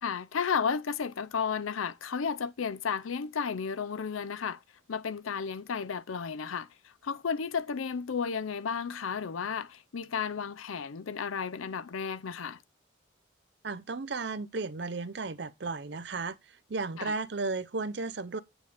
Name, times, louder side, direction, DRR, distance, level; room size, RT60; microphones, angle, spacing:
voice 1, 0.0-4.6 4.9-6.7 7.0-12.6 17.0-17.1, left 6 dB, 90° left, 0.6 m, -33 dB
voice 2, 13.6-18.4, right 3 dB, 55° right, 0.6 m, -34 dB
9.0 x 6.5 x 3.4 m
head